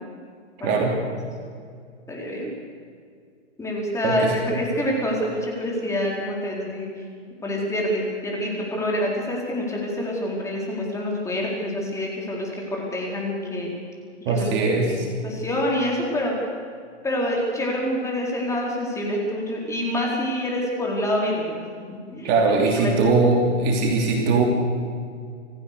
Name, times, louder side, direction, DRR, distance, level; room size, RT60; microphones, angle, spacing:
voice 1, 0.6-0.9 4.0-4.3 14.3-15.1 22.2-24.4, right 3 dB, 30° right, 1 dB, 2.9 m, -20 dB
voice 2, 2.1-2.5 3.6-6.9 7.4-13.7 14.3-14.5 14.8-16.3 17.0-21.6 22.1-22.3 22.7-22.9, left 1 dB, 10° left, -2 dB, 4.3 m, -26 dB
27.5 x 15.0 x 6.8 m, 2.2 s
hypercardioid pair, 140°, 36 cm